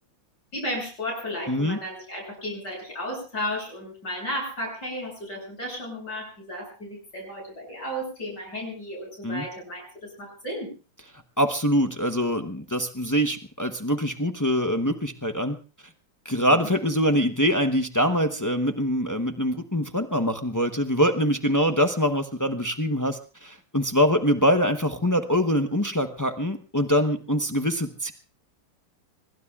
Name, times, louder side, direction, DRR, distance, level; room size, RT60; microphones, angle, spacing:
voice 1, 0.5-10.7 16.5-16.6, equal, 60° left, -1 dB, 8.8 m, -34 dB
voice 2, 1.5-1.8 9.2-9.5 11.4-15.6 16.2-28.1, equal, 25° left, 7 dB, 0.3 m, -24 dB
26.0 x 22.5 x 2.4 m, 0.34 s
omnidirectional pair, 2.1 m